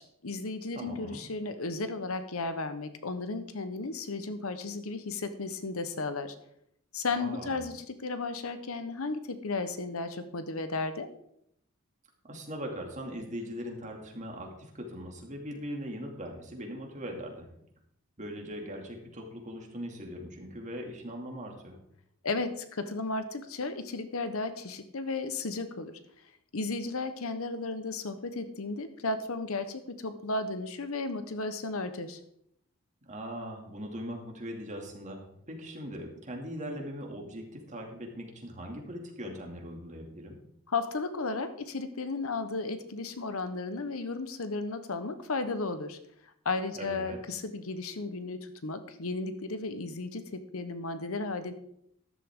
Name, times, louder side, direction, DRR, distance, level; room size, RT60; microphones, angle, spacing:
voice 1, 0.0-6.3 6.9-11.1 22.2-25.9 26.5-32.2 40.7-46.0 46.4-51.5, left 3 dB, 70° left, 10 dB, 1.0 m, -34 dB
voice 2, 0.7-1.2 7.1-7.6 12.3-17.5 18.2-21.8 33.1-40.4 46.7-47.2, equal, 35° right, 1 dB, 2.4 m, -40 dB
13.5 x 11.0 x 3.7 m, 0.73 s
head